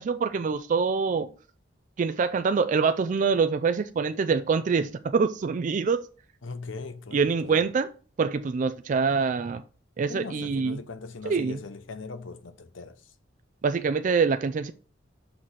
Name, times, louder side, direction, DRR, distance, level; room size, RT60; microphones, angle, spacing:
voice 1, 0.0-1.3 2.0-6.0 7.1-7.9 8.2-9.6 10.0-10.8 11.2-11.6 13.6-14.7, right 5 dB, 40° right, 0.3 m, -25 dB
voice 2, 6.4-7.7 10.1-13.1, left 4 dB, 85° left, 0.8 m, -40 dB
5.9 x 4.0 x 6.2 m
head